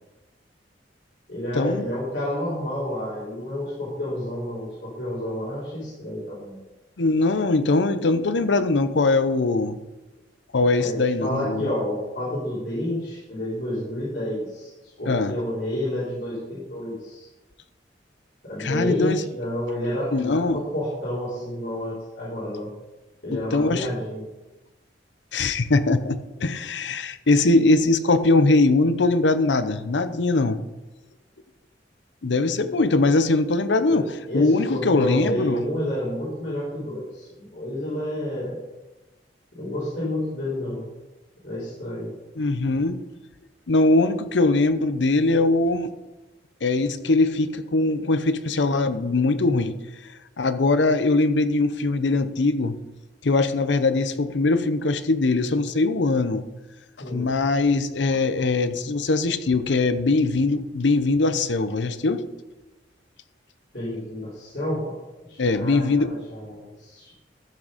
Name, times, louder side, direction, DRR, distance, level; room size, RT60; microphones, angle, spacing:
voice 1, 1.3-6.6 10.8-11.0 11.2-17.3 18.4-22.7 23.2-24.3 33.9-38.6 39.5-40.9 41.4-42.1 57.0-57.3 63.7-64.9 65.3-67.1, left 1 dB, 70° left, -9 dB, 3.8 m, -30 dB
voice 2, 7.0-9.8 10.5-11.7 15.1-15.3 18.6-19.2 20.1-20.6 23.3-23.9 25.3-30.6 32.2-35.6 42.4-43.0 43.7-45.9 46.6-49.7 50.4-52.7 53.2-56.4 57.1-62.2 65.4-66.2, left 3 dB, 85° left, 12 dB, 0.7 m, -21 dB
13.0 x 6.2 x 5.1 m, 1.1 s
head